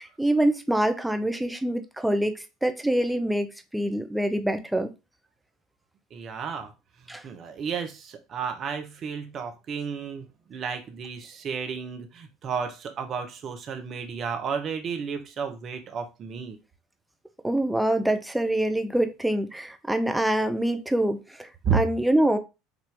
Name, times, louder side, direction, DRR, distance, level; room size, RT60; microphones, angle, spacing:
voice 1, 0.0-4.9 7.1-7.2 17.4-22.4, right 1 dB, 5° right, 0.7 m, -25 dB
voice 2, 6.1-6.7 7.2-16.6 21.6-21.8, right 6 dB, 40° right, 0.9 m, -32 dB
5.0 x 2.8 x 3.5 m
figure-of-eight pair, 70°, 0 cm